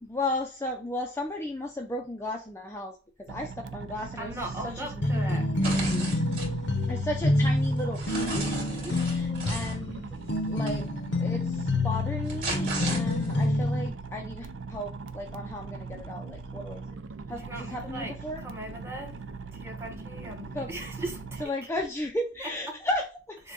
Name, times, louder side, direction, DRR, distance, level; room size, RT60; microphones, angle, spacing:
voice 1, 0.0-3.0 3.3-5.2 6.9-10.1 10.5-10.9 11.2-16.8 17.3-18.4 20.5-20.7 21.4-23.4, left 1 dB, 15° left, 0.4 m, -35 dB
sound 1, 3.3-21.5, right 4 dB, 90° right, 0.5 m, -40 dB
voice 2, 4.2-6.1 8.7-9.6 17.3-19.2 19.5-21.5 22.4-22.8 23.4-23.5, right 1 dB, 15° right, 1.0 m, -39 dB
sound 2, 5.0-13.9, left 2 dB, 70° left, 0.7 m, -27 dB
sound 3, 5.6-6.5 7.1-9.8 10.7-10.8 12.0-13.4, right 3 dB, 50° right, 2.6 m, -35 dB
6.5 x 2.2 x 3.6 m
head